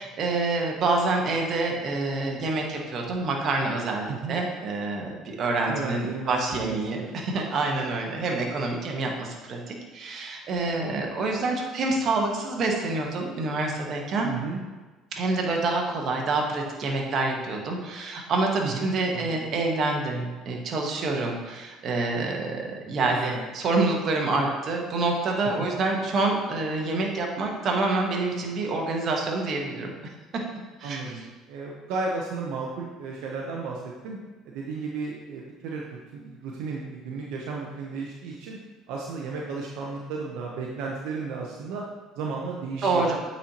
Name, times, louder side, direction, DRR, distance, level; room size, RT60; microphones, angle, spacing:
voice 1, 0.0-14.3 15.1-29.9 30.8-31.1 42.8-43.2, right 3 dB, 50° right, 1 dB, 1.2 m, -27 dB
voice 2, 5.7-7.1 14.2-14.6 18.6-18.8 19.1-19.3 23.0-23.4 30.8-31.2 31.5-34.2 34.5-38.6 38.9-41.8 42.2-43.1, right 4 dB, 80° right, -2 dB, 0.8 m, -34 dB
8.3 x 4.4 x 2.9 m, 1.2 s
supercardioid pair, 95°, 0 cm